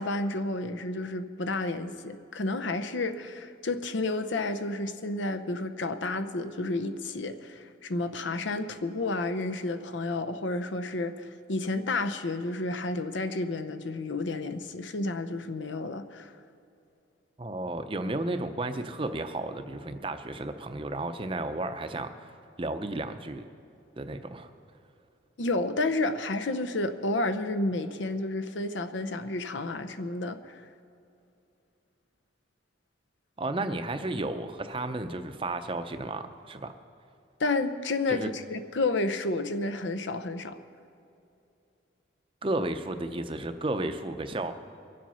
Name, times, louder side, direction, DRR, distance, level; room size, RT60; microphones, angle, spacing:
voice 1, 0.0-16.3 25.4-30.6 37.4-40.6, left 2 dB, 80° left, 9 dB, 0.8 m, -31 dB
voice 2, 17.4-22.1 22.6-23.5 24.0-24.5 33.4-36.7 38.1-38.3 42.4-44.5, right 2 dB, 30° right, 9 dB, 0.6 m, -33 dB
23.0 x 7.6 x 5.6 m, 2.6 s
head